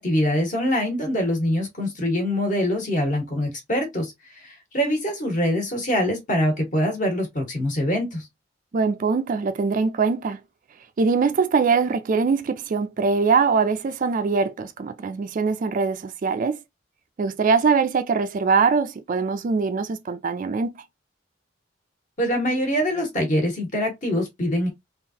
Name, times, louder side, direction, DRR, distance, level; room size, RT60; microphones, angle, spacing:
voice 1, 0.0-4.1 4.4-8.3 22.2-24.7, equal, 45° left, 1.5 m, -24 dB
voice 2, 8.7-10.4 11.0-16.6 17.2-20.7, right 5 dB, 45° right, 0.4 m, -22 dB
3.7 x 2.5 x 2.8 m
head